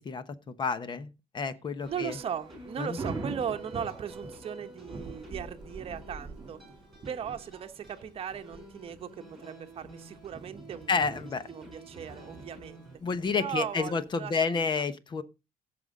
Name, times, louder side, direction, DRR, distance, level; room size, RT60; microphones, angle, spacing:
voice 1, 0.0-2.2 2.8-3.0 10.9-11.5 13.0-15.2, left 5 dB, 30° left, 1.0 m, -30 dB
sound 1, 1.8-13.0, right 1 dB, ahead, 6.1 m, -50 dB
Thunder / Rain, 1.8-14.5, right 3 dB, 25° right, 2.9 m, -45 dB
voice 2, 1.9-6.6 7.0-11.2 11.5-12.9 13.3-14.8, right 8 dB, 40° right, 1.1 m, -38 dB
16.5 x 6.9 x 3.8 m
cardioid pair, 155°, 15 cm